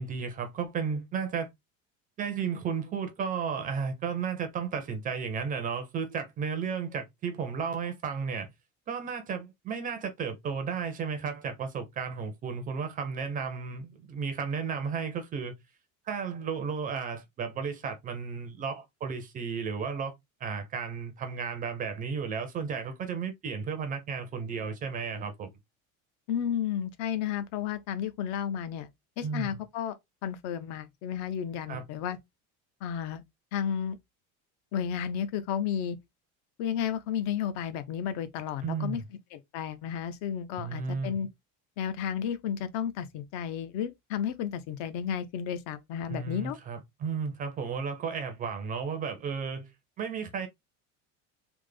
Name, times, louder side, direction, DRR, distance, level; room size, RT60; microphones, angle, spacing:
voice 1, 0.0-1.5 2.2-8.5 8.9-15.5 16.1-20.1 20.4-25.5 29.2-29.6 31.7-31.8 38.6-39.0 40.6-41.2 46.1-49.7 50.0-50.5, right 6 dB, 25° right, 0.5 m, -33 dB
voice 2, 26.3-28.9 29.2-30.0 30.2-32.2 32.8-33.2 33.5-34.0 34.7-36.0 36.6-39.0 39.3-41.3 41.8-46.6, left 9 dB, 55° left, 0.6 m, -32 dB
3.4 x 2.1 x 3.2 m
cardioid pair, 170°, 34 cm